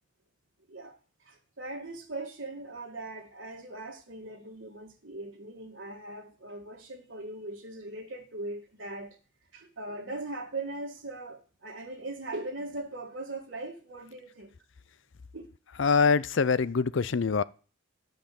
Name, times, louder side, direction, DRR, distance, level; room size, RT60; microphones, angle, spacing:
voice 1, 0.7-9.2 9.5-14.5 15.3-15.5, right 2 dB, 65° right, 2.0 m, -40 dB
voice 2, 15.8-17.4, left 5 dB, 65° left, 0.5 m, -24 dB
12.0 x 5.6 x 8.5 m
head